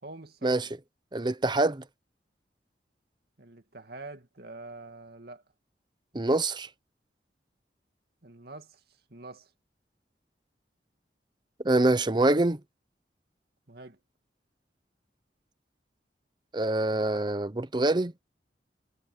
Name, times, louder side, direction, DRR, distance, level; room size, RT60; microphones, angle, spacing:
voice 1, 0.0-0.7 3.4-5.4 8.2-8.8 9.1-9.5 13.7-14.0, right 2 dB, 60° right, 2.5 m, -45 dB
voice 2, 1.1-1.8 6.1-6.7 11.6-12.6 16.5-18.1, right 2 dB, 25° right, 0.9 m, -25 dB
head